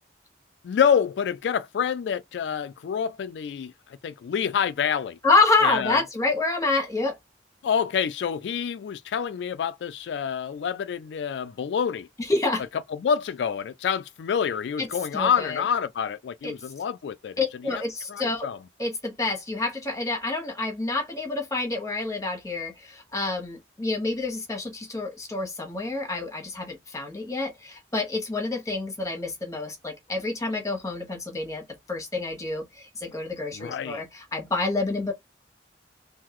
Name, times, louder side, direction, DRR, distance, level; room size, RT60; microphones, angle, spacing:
voice 1, 0.6-5.2 5.6-6.0 7.6-12.1 12.9-17.3 17.6-17.8 18.1-18.6 33.5-34.0, left 7 dB, 75° left, 0.3 m, -27 dB
voice 2, 5.2-7.1 12.3-12.6 14.8-14.9 15.1-15.6 16.4-16.5 17.4-18.5 18.8-31.6 31.9-35.1, left 3 dB, 20° left, 1.3 m, -27 dB
3.7 x 2.7 x 3.0 m
head